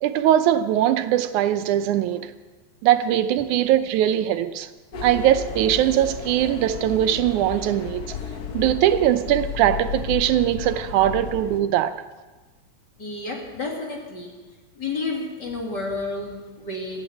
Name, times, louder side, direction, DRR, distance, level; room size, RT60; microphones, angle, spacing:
voice 1, 0.0-2.3 2.8-4.7 5.0-8.1 8.5-11.9, right 12 dB, 85° right, 2.2 m, -21 dB
sound 1, 4.9-11.6, left 6 dB, 70° left, 0.9 m, -33 dB
voice 2, 13.0-14.4 14.7-17.0, left 3 dB, 35° left, 2.9 m, -31 dB
14.5 x 9.0 x 9.3 m
omnidirectional pair, 3.4 m